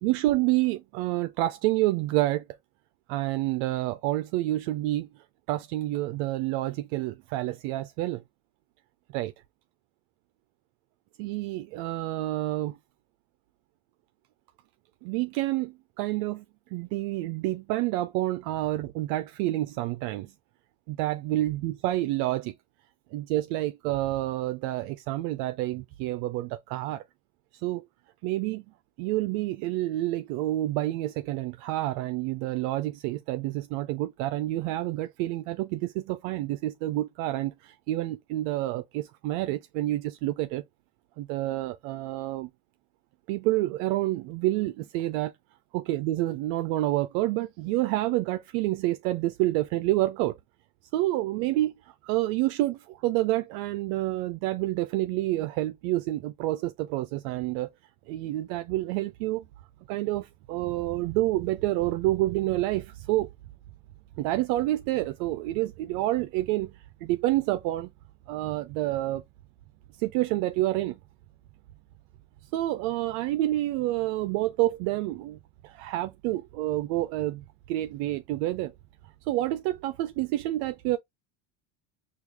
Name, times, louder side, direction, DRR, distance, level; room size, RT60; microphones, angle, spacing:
voice 1, 0.0-2.4 3.1-8.2 9.1-9.3 11.2-12.8 15.0-16.4 16.7-20.3 20.9-22.5 23.1-27.0 27.6-27.9 28.2-28.6 29.0-40.6 41.2-42.5 43.3-45.3 45.7-50.4 50.9-57.7 58.1-59.4 59.9-63.3 64.2-67.9 68.3-69.2 70.0-71.0 72.5-78.7 79.3-81.0, right 16 dB, 65° right, 0.5 m, -28 dB
4.6 x 2.4 x 3.3 m
supercardioid pair, 100°, 41 cm